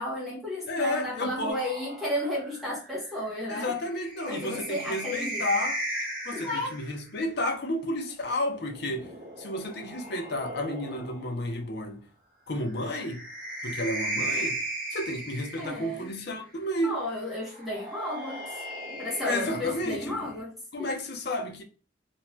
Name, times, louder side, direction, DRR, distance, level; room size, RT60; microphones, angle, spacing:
voice 1, 0.0-3.7 4.3-5.4 6.3-6.7 15.6-16.1 16.8-18.5 18.9-20.9, left 1 dB, ahead, 0.7 m, -33 dB
voice 2, 0.7-1.6 3.5-5.8 6.2-9.1 9.4-12.1 12.5-13.3 13.6-14.6 14.9-17.0 19.2-20.2 20.7-21.6, left 1 dB, 55° left, 0.6 m, -31 dB
sound 1, 1.5-7.0 8.4-11.4 12.7-16.2 17.5-20.4, right 1 dB, 45° right, 1.0 m, -37 dB
2.6 x 2.1 x 3.0 m
head